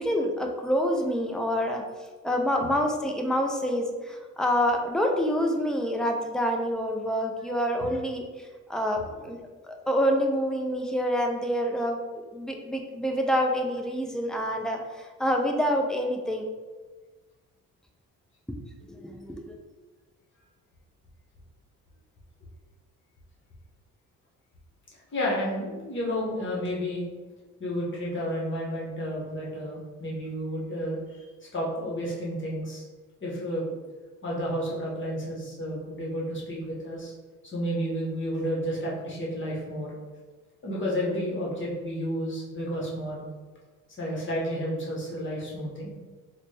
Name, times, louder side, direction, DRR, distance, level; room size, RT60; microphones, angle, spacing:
voice 1, 0.0-1.8 2.2-9.4 9.6-16.5 18.5-18.6 18.9-19.6, equal, ahead, 2 dB, 0.4 m, -27 dB
voice 2, 25.1-27.1 27.6-31.3 31.5-32.8 33.2-33.6 34.2-37.1 37.4-39.9 40.6-43.2 44.0-45.9, equal, 40° left, -5 dB, 1.1 m, -31 dB
3.9 x 2.2 x 3.3 m, 1.3 s
cardioid pair, 90°, 30 cm